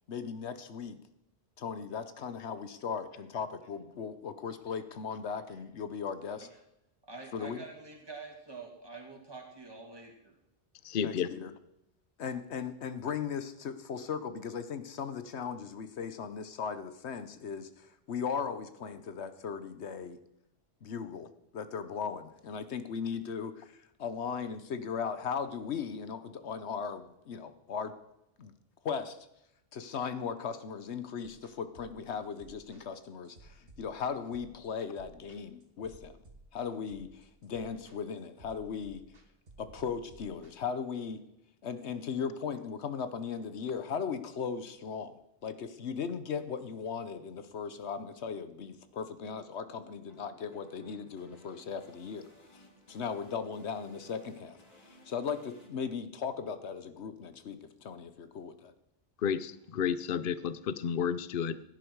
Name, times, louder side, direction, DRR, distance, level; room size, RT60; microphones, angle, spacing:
voice 1, 0.1-1.0 1.6-6.5 7.3-7.6 11.0-11.5 12.2-20.2 20.8-21.3 21.5-27.9 28.4-28.5 28.8-29.2 29.7-36.1 36.5-39.0 39.6-41.2 41.6-52.2 52.5-52.6 52.9-54.6 54.8-58.7, left 6 dB, 80° left, 11 dB, 1.2 m, -37 dB
voice 2, 7.1-10.3, right 3 dB, 20° right, 0 dB, 2.6 m, -47 dB
voice 3, 10.8-11.3 59.2-61.6, left 7 dB, 55° left, 15 dB, 0.8 m, -31 dB
sound 1, 31.2-40.5, right 2 dB, 60° right, 1.7 m, -56 dB
sound 2, 48.8-55.7, left 1 dB, 35° left, 4.0 m, -59 dB
16.5 x 10.5 x 4.7 m, 0.84 s
omnidirectional pair, 1.1 m